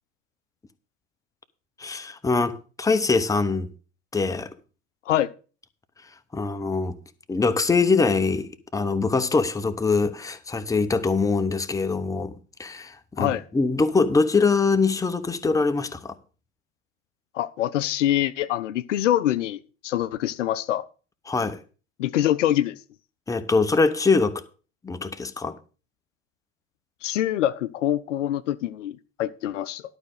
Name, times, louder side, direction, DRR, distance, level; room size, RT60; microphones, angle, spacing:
voice 1, 1.8-3.7 4.1-4.5 6.3-7.0 7.3-16.1 21.3-21.6 23.3-24.4 24.8-25.6, left 4 dB, 10° left, 0.9 m, -23 dB
voice 2, 17.3-20.8 22.0-22.8 27.0-29.8, left 12 dB, 65° left, 0.6 m, -25 dB
11.5 x 5.0 x 6.5 m
figure-of-eight pair, 75°, 39 cm